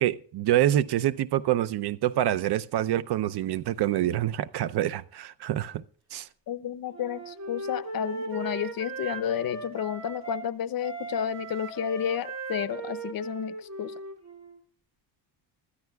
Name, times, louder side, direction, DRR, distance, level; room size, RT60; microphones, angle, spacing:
voice 1, 0.0-5.8 6.1-6.3, right 12 dB, 60° right, 0.7 m, -26 dB
voice 2, 6.5-13.9, left 9 dB, 50° left, 0.8 m, -31 dB
Wind instrument woodwind instrument, 6.9-10.5 10.8-14.6, right 3 dB, 35° right, 2.4 m, -38 dB
25.0 x 13.0 x 2.3 m
cardioid pair, 110°, 44 cm